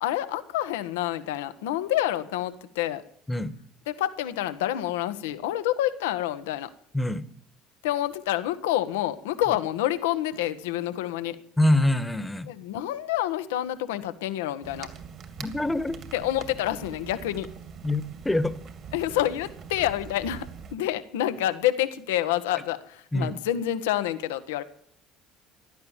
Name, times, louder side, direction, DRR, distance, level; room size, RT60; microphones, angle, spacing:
voice 1, 0.0-3.0 3.9-6.7 7.8-11.4 12.4-14.9 16.1-17.5 18.9-24.6, left 13 dB, 75° left, 1.1 m, -28 dB
voice 2, 6.9-7.2 11.6-12.5 15.4-16.0 17.8-18.6 23.1-23.4, left 1 dB, 10° left, 1.4 m, -25 dB
sound 1, 14.6-20.8, right 7 dB, 50° right, 2.6 m, -43 dB
16.0 x 12.0 x 7.3 m
hypercardioid pair, 60°, 0 cm